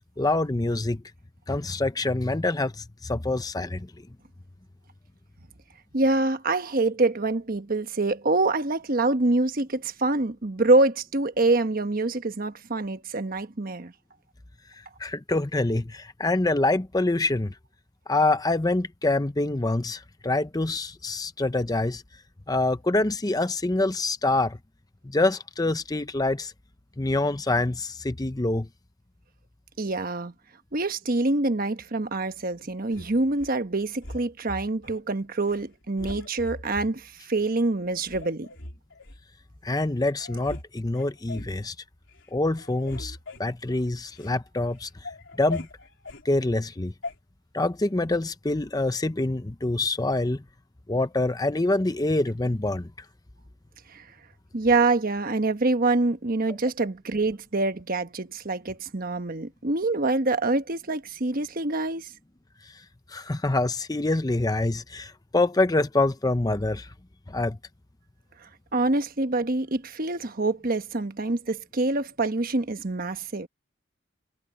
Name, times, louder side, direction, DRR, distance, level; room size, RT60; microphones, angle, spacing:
voice 1, 0.2-1.0 1.5-3.9 15.0-17.5 18.1-22.0 22.5-24.6 25.0-26.5 27.0-28.7 39.6-41.7 42.3-44.9 45.4-45.7 46.2-46.9 47.5-50.4 50.9-52.9 63.1-66.9 67.3-67.6, left 2 dB, 20° left, 0.7 m, -25 dB
voice 2, 5.9-13.9 29.8-30.3 30.7-38.5 53.9-54.0 54.5-62.1 68.7-73.5, right 2 dB, 45° right, 1.2 m, -25 dB
sound 1, 32.9-33.6 34.0-35.0 35.4-35.6 36.0-36.9 37.5-37.6 38.1-39.2 39.8-39.9 40.2-40.7 40.9-41.6 42.0-42.3 42.5-44.4 44.7-46.3 47.0-47.2, left 2 dB, 65° left, 4.2 m, -40 dB
head